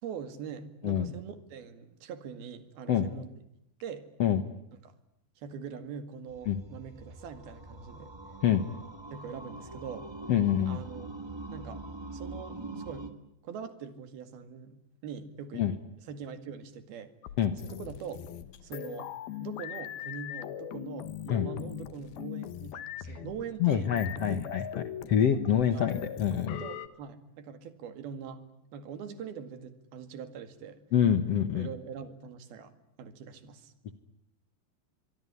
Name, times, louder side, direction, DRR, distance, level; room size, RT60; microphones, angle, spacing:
voice 1, 0.0-3.3 3.8-4.1 4.8-4.9 5.4-8.1 9.1-10.1 10.7-11.1 11.5-11.9 12.1-13.1 13.4-15.7 16.1-17.1 17.6-18.2 18.6-19.1 19.4-24.4 25.7-25.9 26.6-28.4 28.7-30.8 31.5-32.7 33.0-33.7, right 6 dB, 80° right, 11 dB, 4.0 m, -43 dB
sound 1, 6.3-13.1, right 2 dB, 20° right, 0.6 m, -44 dB
voice 2, 10.3-10.8 15.5-15.7 17.4-17.5 21.3-21.5 23.6-24.6 25.1-26.6 30.9-31.7, left 9 dB, 60° left, 11 dB, 1.8 m, -26 dB
sound 2, 17.2-26.9, left 11 dB, 80° left, 3.2 m, -41 dB
24.0 x 24.0 x 9.9 m, 0.80 s
omnidirectional pair, 4.3 m